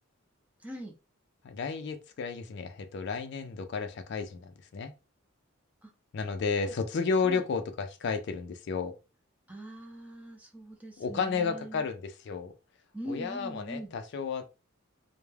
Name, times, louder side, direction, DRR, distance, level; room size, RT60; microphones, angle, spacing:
voice 1, 0.6-0.9 5.8-5.9 6.6-6.8 7.2-7.4 9.5-11.9 12.9-13.9, right 1 dB, 5° right, 0.5 m, -42 dB
voice 2, 1.4-4.9 6.1-8.9 11.0-12.5 13.1-14.5, left 5 dB, 55° left, 0.3 m, -32 dB
2.2 x 2.1 x 3.1 m
head